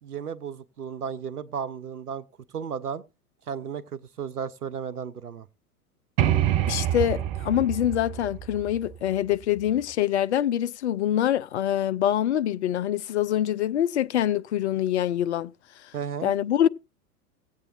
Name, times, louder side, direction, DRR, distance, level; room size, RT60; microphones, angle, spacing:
voice 1, 0.0-2.2 2.5-3.0 3.5-5.5 15.9-16.3, right 7 dB, 75° right, 0.8 m, -34 dB
sound 1, 6.2-9.8, right 11 dB, 25° right, 0.6 m, -27 dB
voice 2, 6.7-15.5 16.2-16.7, left 11 dB, 50° left, 0.5 m, -25 dB
17.5 x 8.3 x 2.6 m
figure-of-eight pair, 95°, 45 cm